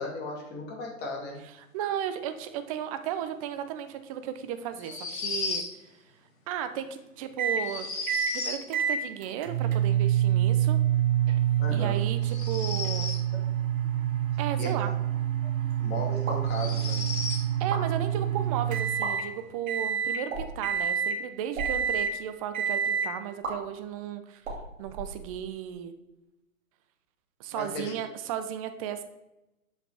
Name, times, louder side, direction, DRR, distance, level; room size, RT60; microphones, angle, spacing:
voice 1, 0.0-1.4 11.6-12.0 14.6-14.7 15.8-17.0 27.5-27.9, left 1 dB, 25° left, 0 dB, 1.9 m, -35 dB
voice 2, 1.6-5.6 6.5-7.9 8.3-10.8 11.7-13.1 14.4-14.9 17.6-24.4 24.8-25.9 27.4-29.0, right 9 dB, 25° right, 9 dB, 0.5 m, -35 dB
sound 1, 4.8-5.7 7.6-8.6 12.2-13.3 15.4-15.5 16.5-17.5, left 4 dB, 70° left, 2.2 m, -34 dB
sound 2, 7.4-7.7 8.1-8.4 8.7-19.3 19.7-20.2 20.6-21.2 21.6-22.1 22.5-23.1, right 10 dB, 75° right, 1.2 m, -27 dB
sound 3, 16.2-16.5 17.5-17.8 18.9-19.1 20.3-20.6 21.4-21.7 23.4-23.5 24.4-25.6, right 3 dB, 55° right, 2.4 m, -36 dB
7.7 x 5.7 x 3.4 m, 0.94 s
hypercardioid pair, 130°, 42 cm